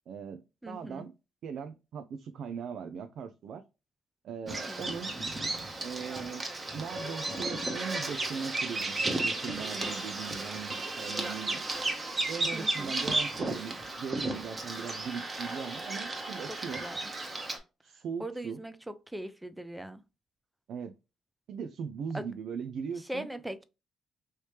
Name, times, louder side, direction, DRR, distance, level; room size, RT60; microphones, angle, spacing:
voice 1, 0.1-0.4 0.7-1.1 1.4-3.6 4.2-5.2 5.8-6.4 6.7-11.6 12.3-16.9 17.8-18.6 20.7-20.9 21.5-23.3, right 6 dB, 70° right, 0.4 m, -39 dB
voice 2, 0.6-1.1 4.4-4.9 12.5-13.0 16.5-17.1 18.2-20.0 22.1-22.3 23.0-23.6, right 1 dB, 10° right, 0.4 m, -40 dB
Bird vocalization bird call bird song, 4.5-17.6, right 2 dB, 30° right, 1.0 m, -34 dB
3.1 x 2.8 x 3.2 m
cardioid pair, 90°, 0 cm